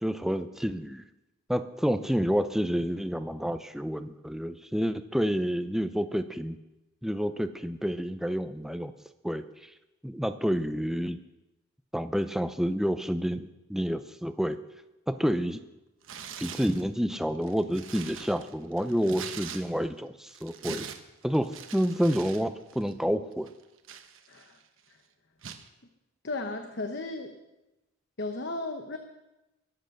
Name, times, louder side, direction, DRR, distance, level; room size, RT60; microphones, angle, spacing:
voice 1, 0.0-1.0 1.5-6.6 7.0-8.9 9.2-9.4 10.0-11.2 11.9-14.6 15.1-15.6 16.4-20.9 21.2-23.5, equal, ahead, 10 dB, 0.6 m, -29 dB
Tearing, 16.0-16.8 17.4-20.0 20.3-22.4 22.7-22.9 23.5-24.6 25.4-25.7, right 7 dB, 65° right, 1.1 m, -43 dB
voice 2, 24.3-24.6 24.9-25.0 26.2-27.3 28.2-29.0, left 2 dB, 55° left, 5 dB, 1.0 m, -35 dB
22.5 x 7.9 x 6.6 m, 0.98 s
head